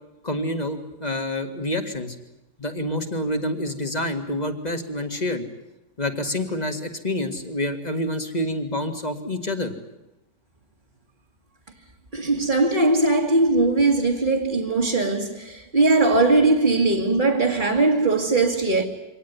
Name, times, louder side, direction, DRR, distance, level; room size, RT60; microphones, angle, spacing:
voice 1, 0.2-2.2 2.6-5.4 6.0-9.7, left 1 dB, 25° left, 2.0 m, -27 dB
voice 2, 12.1-18.8, right 2 dB, 30° right, 1.9 m, -20 dB
24.5 x 18.5 x 9.7 m
omnidirectional pair, 1.7 m